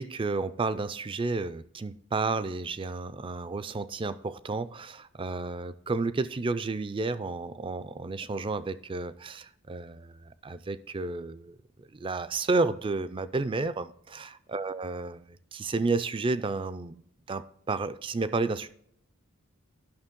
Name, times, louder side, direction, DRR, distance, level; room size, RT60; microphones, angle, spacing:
voice 1, 0.0-11.6 11.9-15.2 15.5-17.0 17.3-18.7, right 3 dB, 25° right, 0.4 m, -31 dB
11.5 x 6.1 x 3.7 m
head